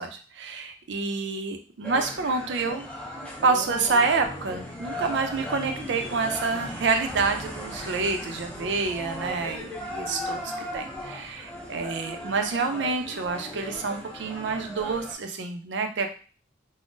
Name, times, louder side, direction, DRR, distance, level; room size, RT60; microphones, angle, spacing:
voice 1, 0.0-2.9 3.2-16.1, right 4 dB, 70° right, 6 dB, 0.4 m, -28 dB
sound 1, 1.8-15.1, left 1 dB, 5° left, 0.4 m, -37 dB
3.7 x 2.0 x 2.5 m, 0.37 s
head